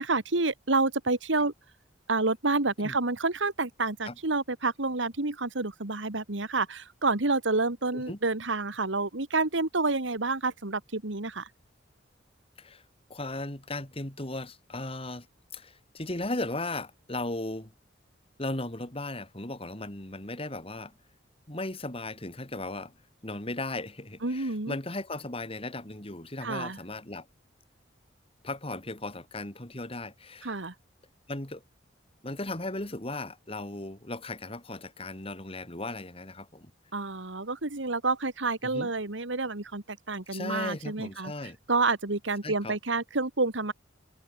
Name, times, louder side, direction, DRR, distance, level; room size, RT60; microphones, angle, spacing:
voice 1, 0.0-1.5 2.1-11.5 24.2-24.8 26.4-26.8 30.4-30.7 36.9-41.3 41.7-43.7, right 3 dB, 80° right, 2.1 m, -29 dB
voice 2, 13.1-15.3 15.5-17.7 18.4-20.9 21.5-22.9 23.2-27.3 28.4-30.5 31.3-31.6 32.2-36.7 38.6-38.9 40.3-41.6 42.4-42.8, left 2 dB, 30° left, 2.7 m, -36 dB
head